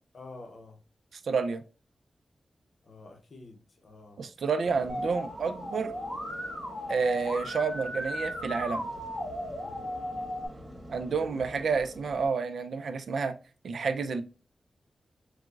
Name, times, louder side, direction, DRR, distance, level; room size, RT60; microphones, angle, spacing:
voice 1, 0.1-0.8 2.8-4.3 9.6-10.0 11.1-11.7, left 2 dB, 60° left, 0.6 m, -49 dB
voice 2, 1.1-1.6 4.2-5.9 6.9-8.9 10.9-13.3 13.6-14.2, right 5 dB, 85° right, 0.3 m, -29 dB
sound 1, 4.6-12.3, equal, 45° right, 1.3 m, -47 dB
Musical instrument, 4.9-10.5, equal, 20° right, 1.5 m, -36 dB
4.4 x 2.0 x 2.3 m
wide cardioid pair, 125°, 0 cm